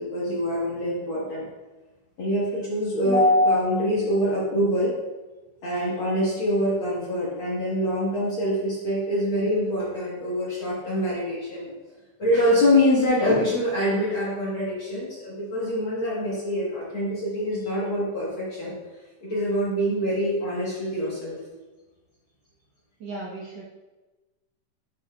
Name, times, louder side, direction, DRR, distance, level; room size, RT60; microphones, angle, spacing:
voice 1, 0.0-1.5 2.2-5.0 5.6-11.7 12.2-18.7 19.2-21.4, equal, 50° left, -6 dB, 1.8 m, -24 dB
voice 2, 23.0-23.6, right 2 dB, 65° right, -5 dB, 1.9 m, -36 dB
9.2 x 5.4 x 2.4 m, 1.1 s
omnidirectional pair, 3.7 m